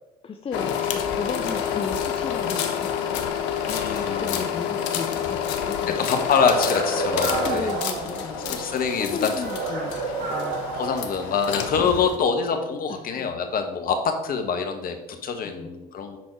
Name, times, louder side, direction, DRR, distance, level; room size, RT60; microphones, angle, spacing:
voice 1, 0.2-3.2 3.7-6.0 7.4-8.6 9.0-10.8 11.7-12.2 12.9-13.5 15.4-15.7, left 5 dB, 30° left, 5 dB, 0.7 m, -35 dB
sound 1, 0.5-12.1, left 8 dB, 70° left, 1.0 m, -28 dB
voice 2, 3.7-4.3 6.0-7.7 8.5-9.3 10.0-10.1 10.8-16.2, left 5 dB, 50° left, 6 dB, 1.4 m, -25 dB
sound 2, 6.3-8.7 9.3-11.7, right 4 dB, 65° right, 1.2 m, -30 dB
10.5 x 4.3 x 4.7 m, 1.0 s
hypercardioid pair, 65°, 20 cm